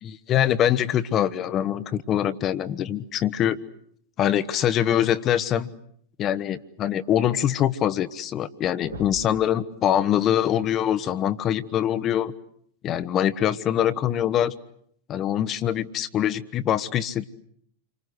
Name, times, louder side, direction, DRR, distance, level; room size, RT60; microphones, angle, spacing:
voice 1, 0.0-3.6 4.2-5.7 6.2-12.3 12.8-14.5 15.1-17.3, left 10 dB, 30° left, 13 dB, 1.2 m, -24 dB
sound 1, 8.4-8.5 8.8-9.5 11.2-11.3 13.1-13.3 14.1-14.2, right 1 dB, 80° right, 3.4 m, -40 dB
29.0 x 25.0 x 8.1 m, 0.67 s
figure-of-eight pair, 90°, 0 cm